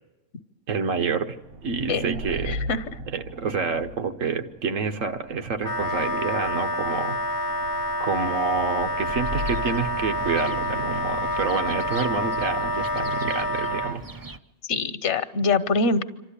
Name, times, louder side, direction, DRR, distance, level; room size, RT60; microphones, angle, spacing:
voice 1, 0.7-1.4 1.6-2.6 3.1-7.2 8.0-14.0, right 5 dB, 85° right, 7 dB, 1.6 m, -28 dB
sound 1, 1.3-13.9, right 1 dB, 70° right, 1.5 m, -38 dB
voice 2, 2.5-2.8 14.7-16.0, left 3 dB, 65° left, 13 dB, 1.2 m, -24 dB
Wind instrument woodwind instrument, 5.6-14.0, equal, 25° left, 0.6 m, -28 dB
sound 2, 9.0-14.4, right 2 dB, 25° right, 0.5 m, -41 dB
27.5 x 13.0 x 10.0 m, 1.0 s
omnidirectional pair, 1.3 m